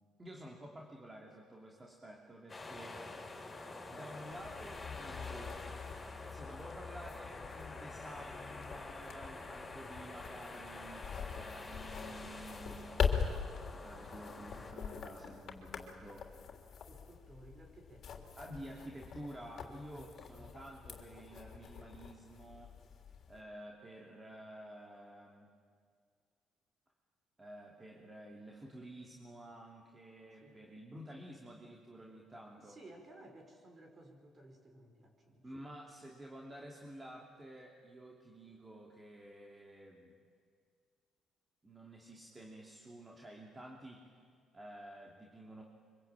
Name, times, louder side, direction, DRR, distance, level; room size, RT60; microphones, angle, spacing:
voice 1, 0.2-3.1 3.9-5.7 6.3-11.1 11.4-13.0 13.8-16.3 18.4-22.8 23.3-25.5 27.4-32.8 35.4-40.2 41.6-44.1 44.5-45.6, right 1 dB, 20° right, -1 dB, 2.9 m, -51 dB
sound 1, 2.5-14.7, left 2 dB, 20° left, 5.8 m, -47 dB
sound 2, 4.3-23.4, left 6 dB, 55° left, 3.3 m, -43 dB
voice 2, 16.9-18.3 19.9-20.5 30.4-30.6 32.6-35.5, right 1 dB, 35° right, 4 dB, 5.7 m, -57 dB
25.5 x 24.5 x 9.0 m, 2.1 s
cardioid pair, 105°, 0 cm